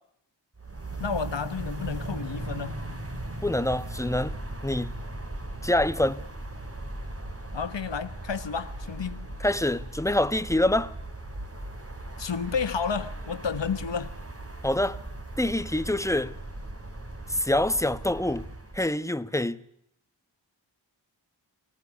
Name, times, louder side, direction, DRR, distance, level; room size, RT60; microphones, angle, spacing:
sound 1, 0.6-18.9, right 1 dB, 30° right, 2.9 m, -38 dB
voice 1, 1.0-2.8 7.5-9.4 12.2-14.1, left 6 dB, 80° left, 1.2 m, -31 dB
voice 2, 3.4-4.4 4.6-4.9 5.6-6.2 9.4-10.9 14.6-15.0 15.4-16.3 17.3-18.5 18.7-19.6, left 1 dB, 5° left, 1.2 m, -25 dB
25.0 x 19.0 x 9.8 m
wide cardioid pair, 55°, 43 cm